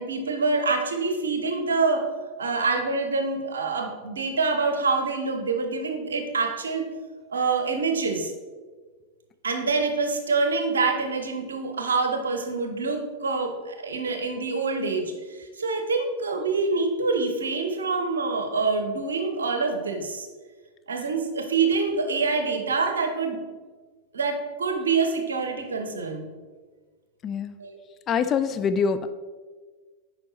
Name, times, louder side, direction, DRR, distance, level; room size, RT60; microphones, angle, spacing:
voice 1, 0.0-2.0 2.4-6.9 7.3-8.3 9.4-20.3 20.9-23.4 24.1-26.3 27.6-27.8, right 4 dB, 70° right, 6 dB, 0.8 m, -26 dB
voice 2, 27.2-27.6 28.1-29.1, left 6 dB, 30° left, 10 dB, 0.4 m, -24 dB
8.8 x 5.1 x 3.1 m, 1.4 s
figure-of-eight pair, 90°, 0 cm